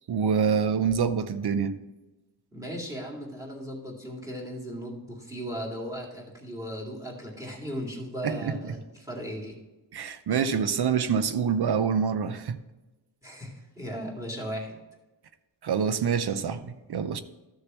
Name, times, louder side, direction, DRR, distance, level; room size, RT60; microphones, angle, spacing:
voice 1, 0.1-1.7 8.2-8.7 9.9-12.6 15.6-17.2, right 6 dB, 65° right, 0.7 m, -26 dB
voice 2, 2.5-9.6 13.2-14.8, equal, 5° right, 2.2 m, -37 dB
13.0 x 6.5 x 3.0 m
wide cardioid pair, 150°, 43 cm